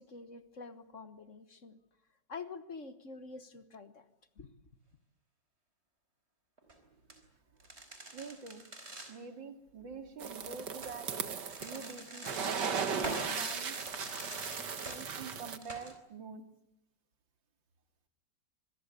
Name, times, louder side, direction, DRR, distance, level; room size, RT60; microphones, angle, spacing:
voice 1, 0.0-1.8 2.3-4.1 4.4-4.5, left 4 dB, 45° left, 1.6 m, -47 dB
sound 1, 6.6-6.7 7.1-7.2 7.6-9.1 10.6-15.9, right 2 dB, 35° right, 4.4 m, -44 dB
voice 2, 8.1-8.6 9.1-11.1 11.6-13.8 14.9-16.4, right 5 dB, 90° right, 3.1 m, -46 dB
sound 2, 10.2-11.9 12.2-15.6, right 6 dB, 65° right, 2.2 m, -37 dB
26.0 x 21.5 x 8.3 m
omnidirectional pair, 2.0 m